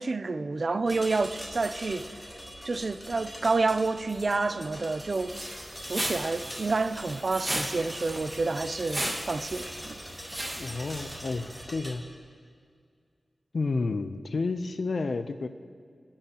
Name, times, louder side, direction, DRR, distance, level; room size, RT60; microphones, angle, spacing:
voice 1, 0.0-2.1 2.6-5.3 5.8-10.0, right 3 dB, 60° right, 0.5 m, -29 dB
sound 1, 0.9-11.9, equal, 10° left, 2.9 m, -43 dB
sound 2, 5.3-11.5, right 1 dB, 25° right, 1.7 m, -36 dB
voice 2, 10.6-12.1 13.5-15.5, left 3 dB, 75° left, 0.6 m, -31 dB
24.0 x 8.8 x 3.0 m
cardioid pair, 50°, 0 cm